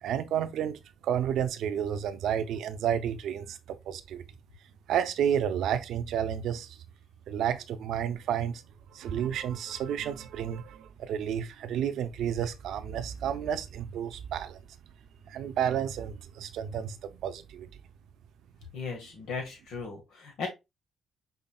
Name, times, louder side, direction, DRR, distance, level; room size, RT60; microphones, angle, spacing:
voice 1, 0.0-4.2 4.9-6.8 7.3-8.6 8.9-14.6 15.3-17.7, right 9 dB, 80° right, 0.5 m, -31 dB
voice 2, 18.7-20.5, left 5 dB, 85° left, 1.7 m, -37 dB
5.5 x 3.9 x 2.3 m
cardioid pair, 90°, 0 cm